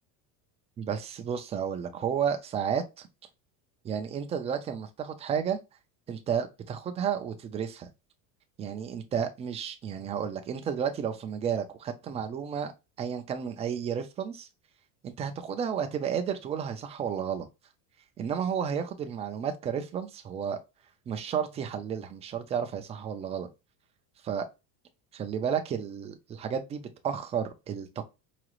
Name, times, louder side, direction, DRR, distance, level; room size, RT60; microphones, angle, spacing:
voice 1, 0.8-3.1 3.8-5.6 6.1-7.9 8.6-12.7 13.0-14.5 15.0-17.5 18.2-20.6 21.1-23.5 24.2-24.5 25.1-28.0, right 7 dB, 20° right, 0.3 m, -32 dB
4.9 x 2.4 x 2.9 m
cardioid pair, 160°, 39 cm